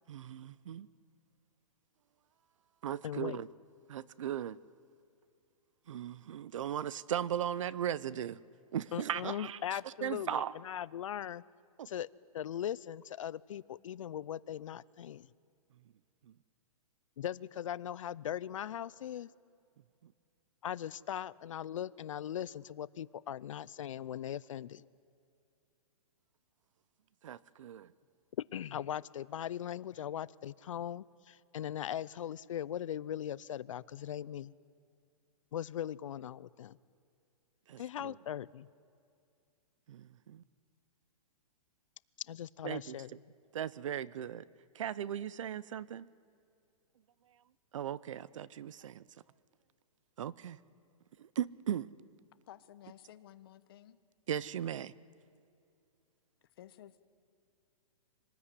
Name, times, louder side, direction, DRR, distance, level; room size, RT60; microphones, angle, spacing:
voice 1, 0.1-0.9 2.8-3.5 3.9-4.6 5.9-8.4 8.7-10.5 11.8-11.9 20.0-20.1 27.2-27.9 37.7-38.1 39.9-40.4 42.6-43.2 43.5-44.4 44.7-46.1 47.7-49.0 50.2-50.6 51.2-51.9 54.3-54.9, right 10 dB, 60° right, 21 dB, 0.7 m, -38 dB
voice 2, 3.0-3.4 8.9-11.4 11.9-12.1 12.3-15.3 17.2-19.3 20.6-24.9 28.5-34.5 35.5-36.8 37.8-38.7 42.3-43.1, left 10 dB, 60° left, 20 dB, 0.5 m, -39 dB
voice 3, 52.5-54.0 56.5-57.0, left 12 dB, 40° left, 13 dB, 1.0 m, -54 dB
25.5 x 19.5 x 9.7 m, 2.5 s
hypercardioid pair, 170°, 19 cm